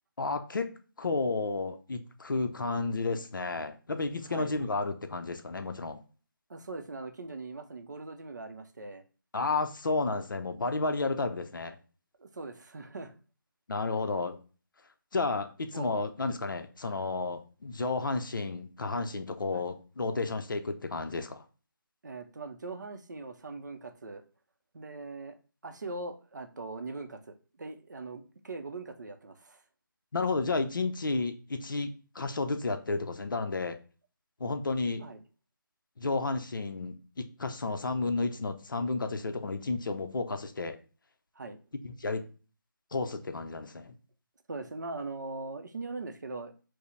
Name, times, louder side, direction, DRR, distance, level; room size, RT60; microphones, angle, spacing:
voice 1, 0.2-0.7 1.0-6.0 9.3-11.8 13.7-14.4 15.1-21.4 30.1-33.8 34.4-35.0 36.0-40.8 41.8-42.2 42.9-43.9, left 3 dB, 65° left, 7 dB, 0.5 m, -32 dB
voice 2, 6.5-9.0 12.2-13.1 15.7-15.9 19.5-19.6 22.0-24.2 24.7-25.4 25.6-29.6 35.0-35.2 41.4-41.6 44.5-46.5, right 3 dB, 55° right, 7 dB, 0.5 m, -41 dB
4.7 x 2.0 x 3.1 m, 0.35 s
figure-of-eight pair, 170°, 12 cm